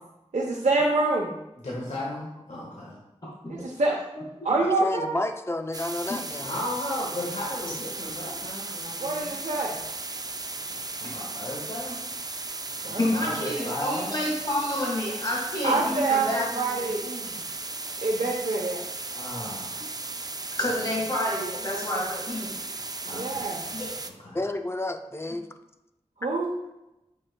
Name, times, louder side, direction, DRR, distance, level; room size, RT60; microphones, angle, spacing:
voice 1, 0.3-1.3 3.5-4.0 4.4-5.2 9.0-9.8 12.8-13.1 15.6-16.3 16.5-17.4 18.0-18.8 23.1-23.7 26.2-26.5, right 3 dB, 85° right, -3 dB, 0.8 m, -26 dB
voice 2, 1.6-3.0 6.4-9.4 10.7-12.0 12.8-14.2 19.1-19.8 20.8-20.9 23.0-24.4, left 1 dB, 80° left, -5 dB, 1.4 m, -36 dB
voice 3, 4.6-6.6 24.3-25.5, left 2 dB, 20° left, 7 dB, 0.5 m, -31 dB
sound 1, 5.7-24.1, right 3 dB, 35° right, 0.4 m, -36 dB
voice 4, 13.0-16.9 20.6-22.6 23.7-23.9, left 1 dB, 35° left, -4 dB, 1.7 m, -29 dB
7.8 x 5.8 x 2.2 m, 0.93 s
wide cardioid pair, 55°, 12 cm